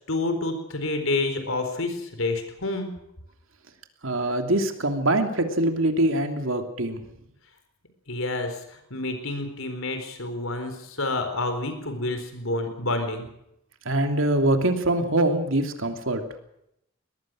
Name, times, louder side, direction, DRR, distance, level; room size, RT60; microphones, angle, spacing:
voice 1, 0.1-3.0 8.1-13.3, left 2 dB, 75° left, 7 dB, 4.2 m, -29 dB
voice 2, 4.0-7.0 13.8-16.2, right 1 dB, 70° right, 5 dB, 2.9 m, -23 dB
23.0 x 19.0 x 6.3 m, 0.78 s
head